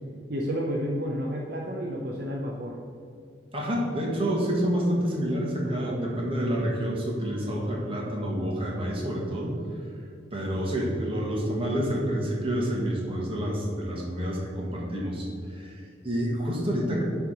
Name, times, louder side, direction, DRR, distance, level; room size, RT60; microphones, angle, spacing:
voice 1, 0.3-2.8 5.7-6.2, equal, 55° right, -1 dB, 0.7 m, -31 dB
voice 2, 3.5-9.5 10.3-17.0, equal, 30° right, -3 dB, 1.6 m, -28 dB
10.5 x 3.5 x 5.9 m, 2.5 s
head